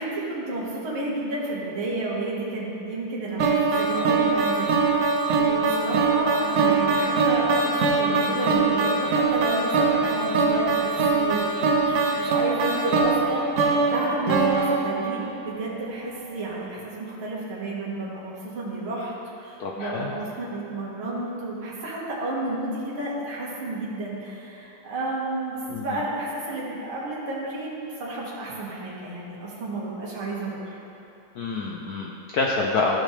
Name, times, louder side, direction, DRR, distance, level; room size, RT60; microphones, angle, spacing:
voice 1, 0.0-30.8, right 2 dB, 80° right, -6 dB, 2.4 m, -31 dB
sound 1, 3.4-15.6, right 4 dB, 60° right, 1.1 m, -22 dB
voice 2, 19.6-20.1 25.7-26.0 31.4-33.0, left 3 dB, 75° left, -1 dB, 0.8 m, -27 dB
14.5 x 5.2 x 3.3 m, 2.9 s
omnidirectional pair, 2.3 m